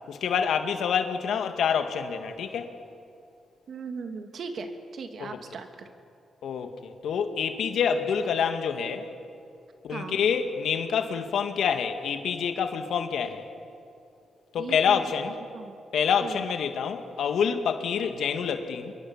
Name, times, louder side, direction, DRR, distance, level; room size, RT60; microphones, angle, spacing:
voice 1, 0.1-2.7 5.2-5.4 6.4-9.1 9.8-13.4 14.5-15.3 15.9-18.9, left 7 dB, 80° left, 7 dB, 2.1 m, -27 dB
voice 2, 3.7-5.9 9.9-10.2 14.6-15.0 15.5-15.7 16.2-16.4, right 4 dB, 65° right, 6 dB, 2.6 m, -38 dB
27.0 x 23.0 x 7.4 m, 2.5 s
cardioid pair, 65°, 0 cm